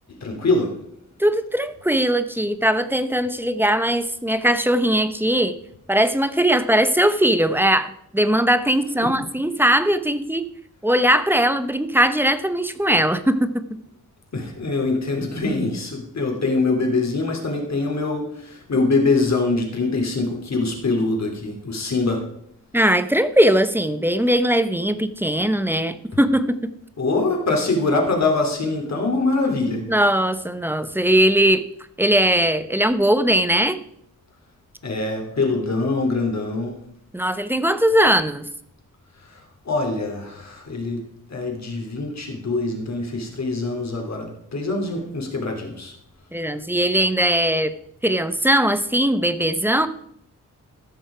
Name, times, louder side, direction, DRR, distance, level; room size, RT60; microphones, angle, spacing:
voice 1, 0.1-0.8 9.0-9.1 14.3-22.3 27.0-29.9 34.8-36.8 39.2-45.9, left 3 dB, 55° left, 1 dB, 2.9 m, -24 dB
voice 2, 1.2-5.6 5.9-10.4 10.8-13.8 22.7-26.7 29.9-31.6 32.0-33.8 37.1-38.5 46.3-47.7 48.0-49.9, right 1 dB, 5° right, 12 dB, 0.8 m, -20 dB
14.5 x 6.3 x 4.9 m, 0.71 s
cardioid pair, 75°, 32 cm